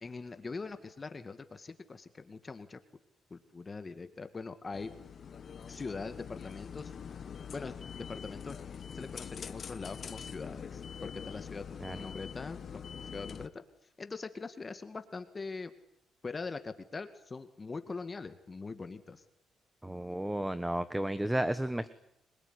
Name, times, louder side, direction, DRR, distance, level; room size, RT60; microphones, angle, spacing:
voice 1, 0.0-2.8 3.3-4.9 5.7-6.9 7.5-8.6 8.9-13.6 14.0-15.7 16.2-19.2, left 4 dB, 30° left, 9 dB, 2.1 m, -42 dB
sound 1, 4.7-13.5, left 7 dB, 50° left, 1.4 m, -44 dB
voice 2, 19.8-21.9, right 1 dB, 10° right, 13 dB, 1.3 m, -33 dB
25.5 x 22.0 x 9.9 m, 0.76 s
cardioid pair, 90°, 0 cm